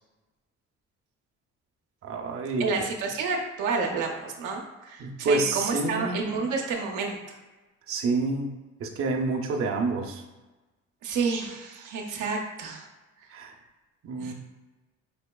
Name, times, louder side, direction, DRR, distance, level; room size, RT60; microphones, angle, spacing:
voice 1, 2.0-2.7 5.0-6.2 7.9-10.2 13.3-13.5 14.0-14.3, right 3 dB, 50° right, 1 dB, 0.6 m, -28 dB
voice 2, 2.6-7.4 11.0-12.9 14.2-14.3, right 4 dB, 90° right, 1 dB, 0.6 m, -30 dB
4.7 x 2.8 x 2.2 m, 1.2 s
cardioid pair, 90°, 30 cm